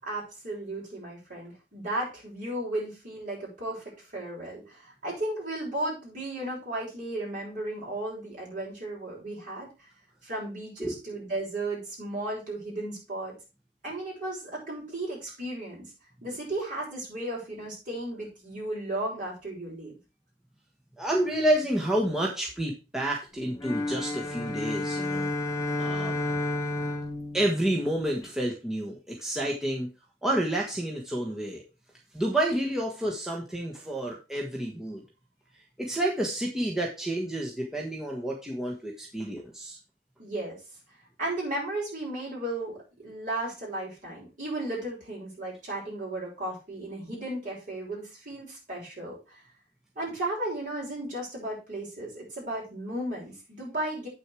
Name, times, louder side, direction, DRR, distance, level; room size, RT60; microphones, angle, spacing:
voice 1, 0.0-3.8 4.1-9.7 10.2-13.3 13.8-15.9 16.2-19.9 40.2-40.6 41.2-49.4 50.0-54.1, right 1 dB, 45° right, -3 dB, 5.9 m, -35 dB
voice 2, 21.0-25.3 25.8-26.2 27.3-29.9 30.2-31.6 32.1-35.0 35.8-39.8, right 1 dB, 5° right, -2 dB, 1.4 m, -29 dB
sound 1, 23.6-28.3, left 2 dB, 15° left, 1.3 m, -31 dB
8.4 x 6.4 x 4.8 m, 0.29 s
head